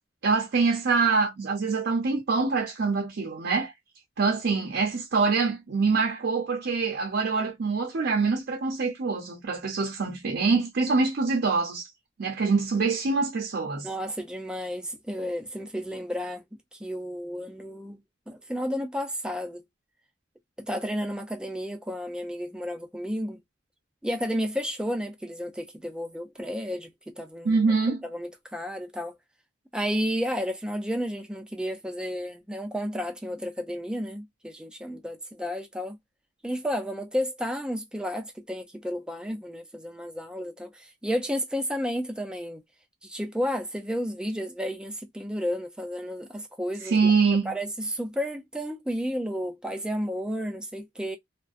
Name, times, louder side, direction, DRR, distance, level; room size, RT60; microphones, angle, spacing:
voice 1, 0.2-3.7 4.2-11.9 12.2-13.9 27.4-28.0 46.8-47.5, right 4 dB, 60° right, 0.5 m, -25 dB
voice 2, 13.8-16.4 16.7-18.0 18.3-19.6 20.6-23.4 24.0-27.6 28.0-29.2 29.7-36.0 36.4-42.6 43.0-47.1 47.5-51.2, equal, 5° right, 0.4 m, -32 dB
2.5 x 2.1 x 2.4 m
head